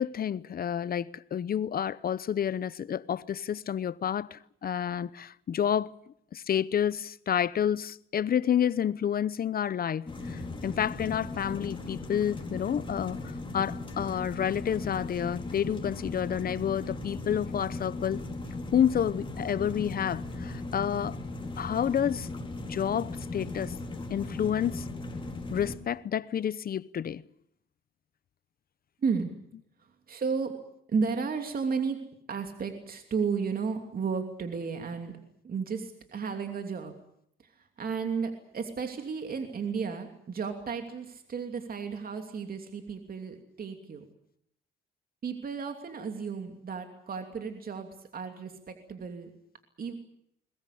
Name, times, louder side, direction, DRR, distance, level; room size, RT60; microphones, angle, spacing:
voice 1, 0.0-5.9 6.3-18.2 18.7-21.2 21.6-22.3 22.7-23.7 24.1-24.8 25.5-27.2, left 9 dB, 50° left, 0.8 m, -29 dB
sound 1, 10.1-25.8, left 2 dB, 25° left, 4.5 m, -37 dB
voice 2, 29.0-29.3 29.8-30.5 30.9-32.0 32.3-35.2 35.4-36.9 37.4-44.0 45.2-49.3 49.8-49.9, right 5 dB, 50° right, 2.9 m, -33 dB
21.5 x 21.0 x 8.5 m
cardioid pair, 90°, 20 cm